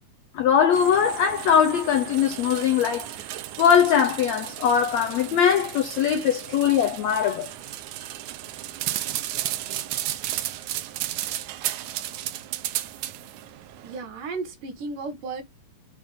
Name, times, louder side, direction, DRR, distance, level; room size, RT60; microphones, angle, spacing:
voice 1, 0.3-3.1 3.6-7.5, left 8 dB, 75° left, 1.6 m, -21 dB
sound 1, 0.7-14.0, right 14 dB, 85° right, 1.7 m, -34 dB
voice 2, 13.8-15.4, right 4 dB, 70° right, 2.8 m, -34 dB
6.9 x 3.4 x 5.2 m
omnidirectional pair, 4.2 m